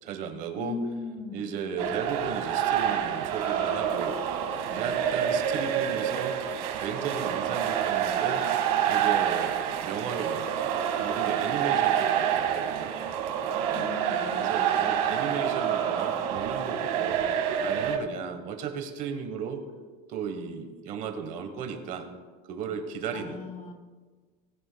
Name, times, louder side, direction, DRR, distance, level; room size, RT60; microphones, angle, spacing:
voice 1, 0.0-0.8 1.3-4.2 4.7-6.4 6.8-8.4 8.9-12.9 13.7-14.0 14.4-17.2 17.6-19.7 20.1-22.1 22.5-23.4, right 6 dB, 45° right, 6 dB, 1.1 m, -35 dB
voice 2, 0.6-1.9 4.7-4.9 13.7-14.9 23.1-23.7, left 4 dB, 40° left, 5 dB, 1.7 m, -39 dB
sound 1, 1.8-18.0, right 9 dB, 75° right, 1.7 m, -27 dB
19.0 x 10.5 x 2.2 m, 1.4 s
cardioid pair, 165°, 19 cm